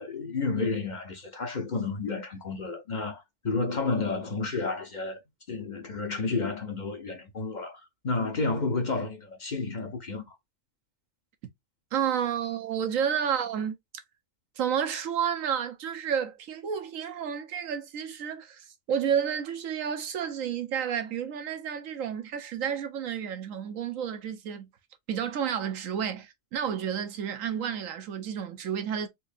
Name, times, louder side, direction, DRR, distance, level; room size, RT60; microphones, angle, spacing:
voice 1, 0.0-5.2 5.5-10.4, left 3 dB, 40° left, 0.8 m, -31 dB
voice 2, 11.9-13.7 14.6-24.7 25.1-29.1, right 8 dB, 85° right, 1.2 m, -31 dB
4.3 x 2.7 x 2.5 m
omnidirectional pair, 1.3 m